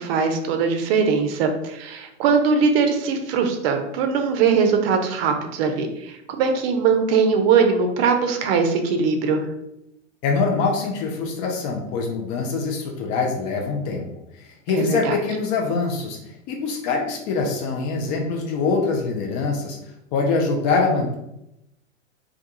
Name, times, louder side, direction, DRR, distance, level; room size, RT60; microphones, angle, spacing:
voice 1, 0.0-9.4 14.7-15.1, right 5 dB, 50° right, 6 dB, 0.5 m, -21 dB
voice 2, 10.2-14.0 14.4-16.2 16.5-19.8 20.1-21.1, left 4 dB, 35° left, 1 dB, 0.4 m, -24 dB
2.3 x 2.2 x 2.8 m, 0.85 s
hypercardioid pair, 105°, 39 cm